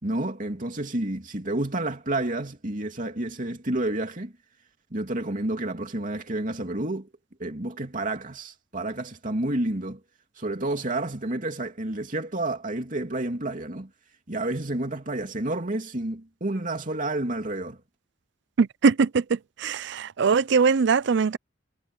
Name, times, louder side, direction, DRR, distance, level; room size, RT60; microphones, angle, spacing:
voice 1, 0.0-4.3 4.9-7.1 7.4-10.0 10.4-13.9 14.3-17.8, right 2 dB, 45° right, 2.8 m, -30 dB
voice 2, 18.6-21.4, right 5 dB, 65° right, 0.5 m, -22 dB
head